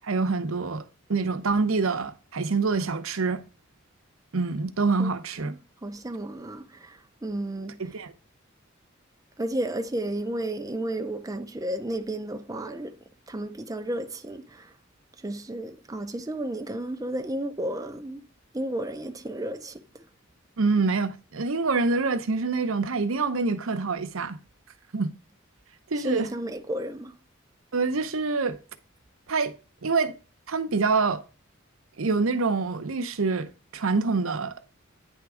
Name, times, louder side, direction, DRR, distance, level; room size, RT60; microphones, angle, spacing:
voice 1, 0.0-0.8 1.1-3.4 4.3-5.5 7.8-8.1 20.6-24.4 24.9-25.1 25.9-26.3 27.7-28.6 29.3-29.5 29.8-30.1 30.5-31.2 32.0-34.5, right 4 dB, 80° right, 0.8 m, -26 dB
voice 2, 5.4-8.0 9.4-14.8 15.2-18.3 18.5-20.1 26.0-27.2, right 1 dB, 15° right, 0.6 m, -33 dB
9.3 x 3.6 x 4.9 m
head